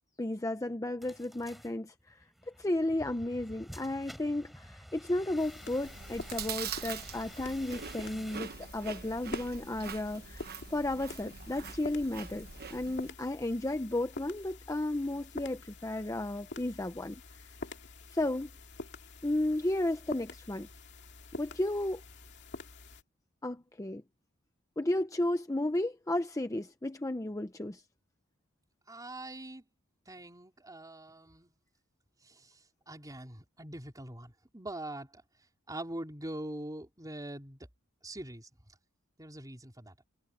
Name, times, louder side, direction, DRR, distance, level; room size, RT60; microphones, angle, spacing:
voice 1, 0.2-2.3 2.6-17.5 18.1-18.5 19.2-20.7 21.4-22.0 23.4-24.0 24.8-27.8, left 1 dB, 15° left, 0.7 m, -33 dB
sound 1, 1.0-8.4, equal, ahead, 7.6 m, -51 dB
sound 2, 5.4-23.0, left 3 dB, 55° left, 2.4 m, -47 dB
Chewing mastication, 5.8-13.1, right 7 dB, 45° right, 1.2 m, -43 dB
voice 2, 28.9-29.6 30.1-31.5 32.2-35.2 35.7-37.7 38.0-38.7 39.2-40.1, right 1 dB, 15° right, 4.3 m, -43 dB
head